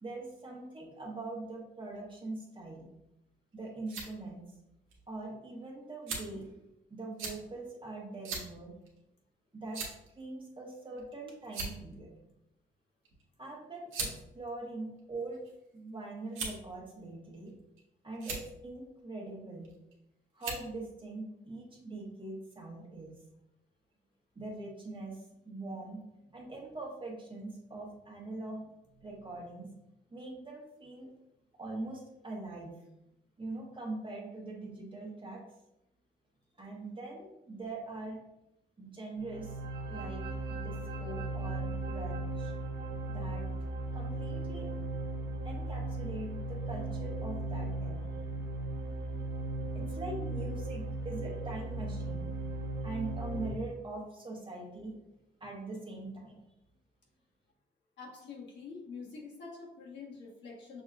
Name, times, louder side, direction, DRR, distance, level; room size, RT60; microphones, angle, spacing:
voice 1, 0.0-2.9 3.5-4.4 5.1-6.6 6.9-8.7 9.5-9.8 10.2-12.1 13.4-15.4 15.7-17.5 18.0-19.7 20.3-23.1 24.3-26.0 26.3-29.7 30.1-31.1 31.6-32.7 33.4-35.4 36.6-38.2 38.8-40.2 40.5-42.5 43.1-43.5 43.9-44.7 45.4-48.0 49.1-52.3 52.8-55.0 55.4-56.4, right 2 dB, 25° right, -1 dB, 1.2 m, -42 dB
sound 1, 3.5-4.1 4.9-5.0 6.1-6.4 7.2-7.4 8.2-8.5 8.9-9.0 9.7-10.1 11.0-11.1 11.4-11.9 13.0-13.2 13.9-14.2 15.0-15.6 16.3-16.7 17.5-17.8 18.1-18.4 19.6-19.9 20.4-20.7, right 4 dB, 80° right, 1.2 m, -38 dB
sound 2, 39.2-53.5, right 2 dB, 60° right, 0.7 m, -37 dB
voice 2, 58.0-60.8, left 4 dB, 65° left, -3 dB, 1.4 m, -46 dB
6.2 x 3.0 x 2.4 m, 0.88 s
cardioid pair, 90°, 20 cm